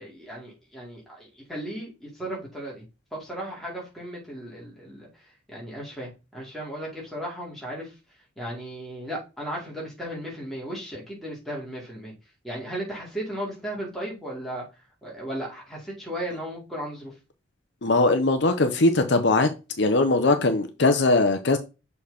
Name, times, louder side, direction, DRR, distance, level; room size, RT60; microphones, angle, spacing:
voice 1, 0.0-2.9 3.1-5.1 5.5-7.9 8.4-12.1 12.4-14.6 15.0-17.1, right 1 dB, ahead, 2.5 m, -35 dB
voice 2, 17.8-19.5 19.8-21.6, left 2 dB, 65° left, 0.7 m, -20 dB
6.8 x 4.0 x 3.5 m
head